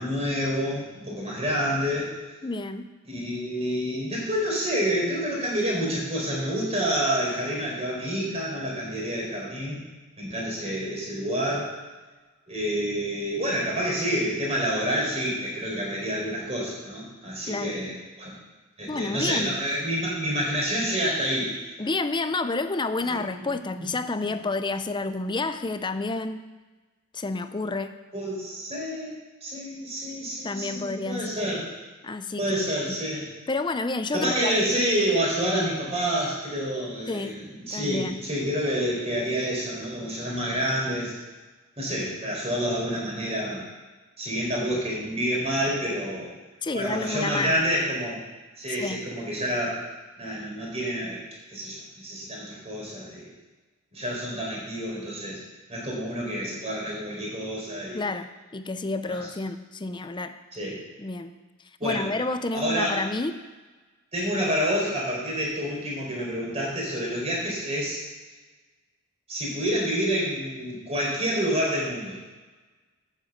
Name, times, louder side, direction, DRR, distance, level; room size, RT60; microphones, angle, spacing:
voice 1, 0.0-2.1 3.1-9.9 10.2-11.7 12.5-18.3 18.8-21.5 23.0-23.5 24.2-24.3 28.1-31.7 32.4-33.3 34.1-41.2 41.8-43.6 44.2-46.4 46.7-48.2 48.6-49.8 50.2-51.2 51.5-53.3 53.9-55.4 55.7-58.0 59.1-59.3 60.5-60.8 61.8-62.1 62.5-63.1 64.1-68.0 69.3-72.2, equal, 30° right, -4 dB, 4.3 m, -28 dB
voice 2, 2.4-2.9 17.5-17.8 18.9-19.6 21.8-26.4 27.1-28.0 30.4-31.5 32.0-32.5 32.9-33.0 33.5-34.5 37.1-37.4 37.7-38.2 46.6-47.6 48.8-49.0 57.9-60.3 61.0-61.4 61.8-63.4, left 3 dB, 20° left, 10 dB, 0.5 m, -30 dB
9.4 x 7.4 x 7.9 m, 1.2 s
head